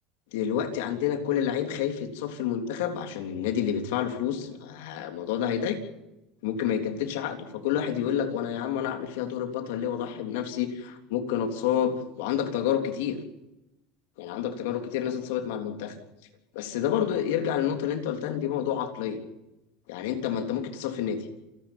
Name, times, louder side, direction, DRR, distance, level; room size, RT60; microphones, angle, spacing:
voice 1, 0.3-5.8 6.4-13.2 14.2-16.0 16.5-19.2 19.9-21.3, left 9 dB, 80° left, 5 dB, 3.5 m, -29 dB
28.0 x 11.5 x 9.1 m, 0.91 s
supercardioid pair, 135°, 0 cm